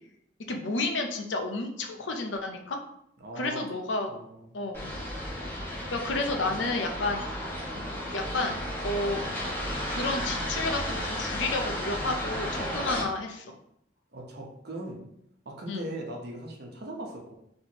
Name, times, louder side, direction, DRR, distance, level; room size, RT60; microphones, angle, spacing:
voice 1, 0.5-2.8 3.3-4.1 4.5-4.9 5.9-7.3 7.7-7.8 8.1-9.2 9.9-13.5 15.7-15.9, left 2 dB, 80° left, 3 dB, 0.6 m, -31 dB
voice 2, 3.2-3.6 4.1-4.6 14.1-15.0 15.4-17.3, right 1 dB, 60° right, -1 dB, 1.0 m, -39 dB
sound 1, 4.7-13.0, equal, 10° left, 1.6 m, -33 dB
4.3 x 3.4 x 3.0 m, 0.74 s
head